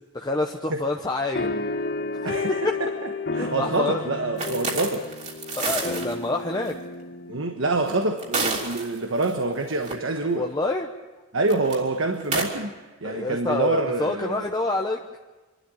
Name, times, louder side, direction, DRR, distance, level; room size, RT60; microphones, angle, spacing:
voice 1, 0.1-1.6 2.1-2.7 3.4-4.0 5.5-6.8 10.3-10.9 13.0-15.0, left 2 dB, 20° left, 2 dB, 0.9 m, -27 dB
sound 1, 1.3-8.2, left 3 dB, 55° left, 1.4 m, -32 dB
voice 2, 2.2-2.9 3.3-5.1 7.3-10.4 11.3-12.7 13.0-14.4, right 2 dB, 80° right, 4 dB, 1.3 m, -26 dB
sound 2, 4.4-6.1 6.7-6.8 7.9-9.3 9.7-9.9 11.4-11.7 12.2-12.5, right 3 dB, 35° right, 3.2 m, -29 dB
25.0 x 12.5 x 9.0 m, 1.2 s
head